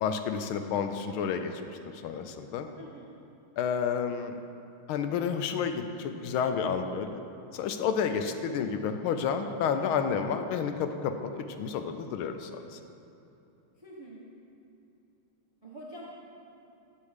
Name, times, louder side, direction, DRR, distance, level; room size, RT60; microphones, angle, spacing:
voice 1, 0.0-1.5 2.0-2.7 3.6-4.3 4.9-7.2 7.5-12.8, left 6 dB, 80° left, 7 dB, 1.4 m, -30 dB
voice 2, 2.8-3.1 13.8-14.2 15.6-16.1, equal, 35° right, -4 dB, 0.4 m, -46 dB
10.0 x 6.6 x 4.8 m, 2.9 s
omnidirectional pair, 2.4 m